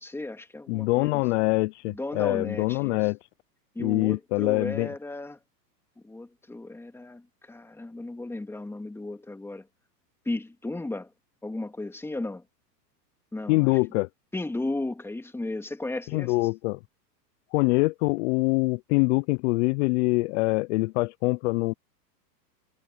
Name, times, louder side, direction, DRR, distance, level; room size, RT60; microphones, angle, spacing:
voice 1, 0.0-1.2 1.9-3.1 3.7-5.4 6.0-9.7 10.3-11.1 11.4-12.4 13.3-13.7 14.3-16.4, left 2 dB, 5° left, 2.3 m, -35 dB
voice 2, 0.7-3.2 3.8-4.9 13.5-14.1 16.1-16.8 17.5-21.7, left 24 dB, 45° left, 0.7 m, -24 dB
hypercardioid pair, 125°, 50 cm